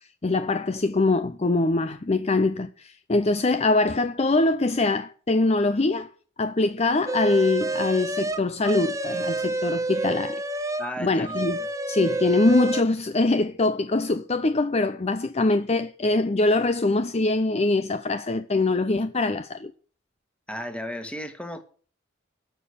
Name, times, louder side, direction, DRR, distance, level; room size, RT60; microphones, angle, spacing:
voice 1, 0.2-6.1 6.4-10.4 11.0-11.6 11.9-19.7, left 2 dB, 35° left, 0.6 m, -23 dB
sound 1, 7.1-10.9 11.2-12.8, right 2 dB, 15° right, 1.0 m, -28 dB
voice 2, 10.8-11.4 20.5-21.6, equal, 5° left, 1.8 m, -34 dB
12.5 x 6.9 x 9.9 m
head